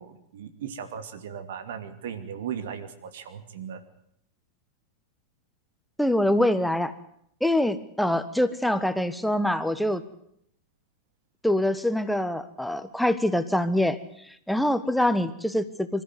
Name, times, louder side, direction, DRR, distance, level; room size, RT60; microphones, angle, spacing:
voice 1, 0.0-3.8, right 8 dB, 60° right, 10 dB, 2.5 m, -37 dB
voice 2, 6.0-6.9 7.4-10.0 11.4-14.0 14.3-16.0, left 1 dB, ahead, 12 dB, 1.3 m, -24 dB
26.0 x 14.0 x 9.6 m, 0.72 s
figure-of-eight pair, 90°, 0 cm